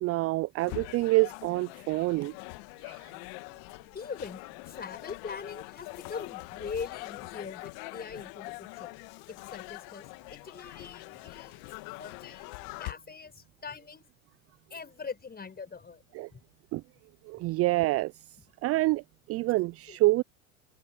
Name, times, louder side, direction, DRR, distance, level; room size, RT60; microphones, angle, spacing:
voice 1, 0.0-2.3 2.8-3.0 16.1-16.3 16.7-16.8 17.3-18.1 18.6-19.0 19.3-20.2, right 20 dB, 35° right, 0.4 m, -26 dB
sound 1, 0.6-12.9, left 26 dB, 60° left, 1.8 m, -43 dB
voice 2, 3.9-8.9 9.3-11.6 12.0-12.5 12.8-14.0 14.7-16.0 16.3-16.4 19.9-20.0, left 5 dB, 25° left, 5.5 m, -42 dB
hypercardioid pair, 80°, 41 cm